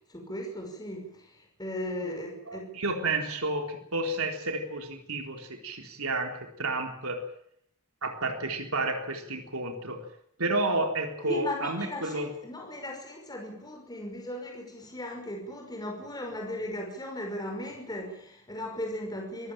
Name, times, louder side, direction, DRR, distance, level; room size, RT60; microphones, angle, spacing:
voice 1, 0.1-2.7 11.2-19.5, left 1 dB, 20° left, 1 dB, 5.8 m, -37 dB
voice 2, 2.5-7.2 8.0-10.0 10.4-12.3, right 2 dB, 75° right, 3 dB, 3.9 m, -31 dB
25.5 x 16.0 x 9.0 m, 0.70 s
head